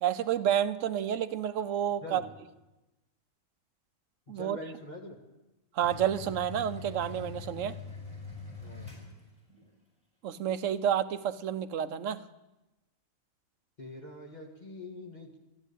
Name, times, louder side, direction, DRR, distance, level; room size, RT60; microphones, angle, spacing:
voice 1, 0.0-2.2 4.3-4.6 5.8-7.7 10.2-12.2, right 10 dB, 70° right, 11 dB, 1.0 m, -30 dB
voice 2, 4.3-5.2 8.6-8.9 13.8-15.4, left 2 dB, 35° left, 0 dB, 1.7 m, -44 dB
sound 1, 5.8-9.7, left 4 dB, 5° left, 5.5 m, -43 dB
14.0 x 11.0 x 8.1 m, 1.0 s
omnidirectional pair, 1.4 m